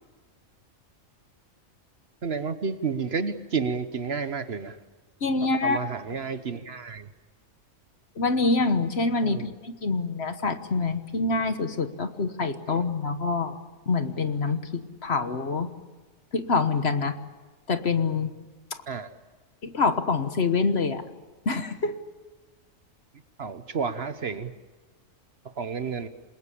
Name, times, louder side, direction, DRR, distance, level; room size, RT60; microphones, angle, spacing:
voice 1, 2.2-4.8 5.6-7.1 9.2-9.5 12.7-12.8 18.9-19.1 23.4-24.5 25.6-26.1, right 5 dB, 50° right, 11 dB, 1.2 m, -31 dB
voice 2, 5.2-5.8 8.2-13.6 13.9-15.7 16.3-17.2 17.7-18.3 19.6-21.0 21.4-22.0, left 4 dB, 50° left, 9 dB, 1.5 m, -26 dB
27.0 x 21.5 x 8.5 m, 1.3 s
omnidirectional pair, 1.4 m